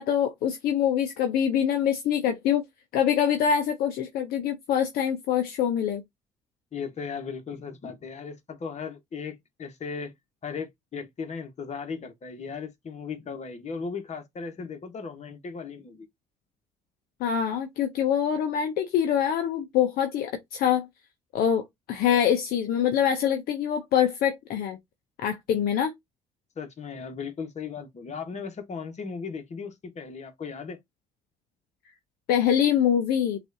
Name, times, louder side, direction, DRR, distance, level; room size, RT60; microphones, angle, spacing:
voice 1, 0.0-2.6 2.9-6.0 17.2-20.9 21.3-24.8 25.2-25.9 32.3-33.4, left 9 dB, 65° left, 0.6 m, -24 dB
voice 2, 6.7-10.1 10.4-16.1 26.6-30.8, left 5 dB, 45° left, 1.2 m, -37 dB
6.0 x 2.5 x 2.6 m
hypercardioid pair, 55°, 17 cm